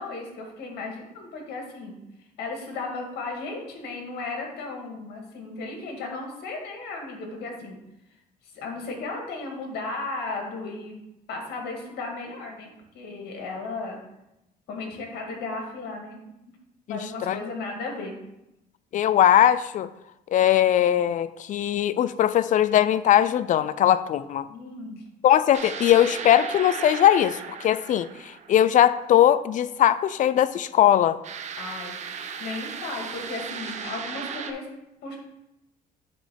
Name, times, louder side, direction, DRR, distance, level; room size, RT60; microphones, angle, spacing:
voice 1, 0.0-2.0 2.4-7.8 8.5-11.0 11.3-14.0 14.7-16.2 16.9-18.2 24.5-25.0 31.6-34.7 35.0-35.2, left 3 dB, 75° left, 1 dB, 2.0 m, -35 dB
voice 2, 16.9-17.4 18.9-19.9 20.3-24.5 25.2-31.2, left 11 dB, 50° left, 15 dB, 0.4 m, -20 dB
sound 1, 25.5-29.0 31.2-34.5, right 6 dB, 45° right, 0.7 m, -36 dB
8.4 x 3.1 x 5.8 m, 0.88 s
cardioid pair, 110°, 17 cm